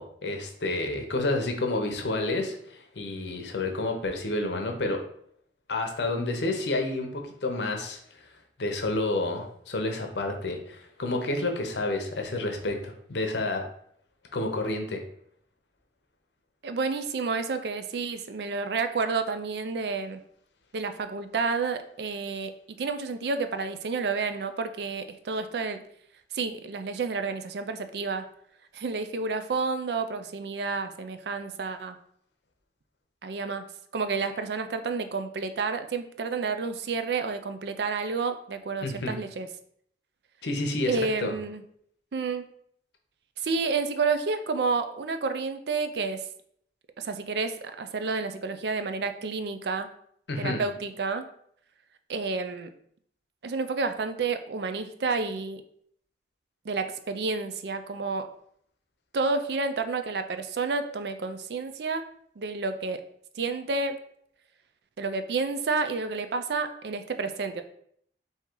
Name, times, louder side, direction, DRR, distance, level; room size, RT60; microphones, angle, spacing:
voice 1, 0.0-5.0 5.7-8.3 8.6-13.6 14.3-15.0 38.8-39.2 40.4-41.3 50.3-50.6, left 2 dB, 80° left, 4 dB, 0.8 m, -30 dB
voice 2, 16.6-20.2 20.7-25.8 26.3-28.3 28.7-32.0 33.2-33.7 33.9-39.5 40.9-41.6 42.1-42.5 43.4-46.3 47.0-49.9 50.4-51.3 52.1-52.7 53.4-55.6 56.6-58.3 59.1-62.0 62.4-63.0 63.3-64.0 65.0-67.6, right 4 dB, 70° right, 9 dB, 0.4 m, -30 dB
3.7 x 2.8 x 4.5 m, 0.67 s
head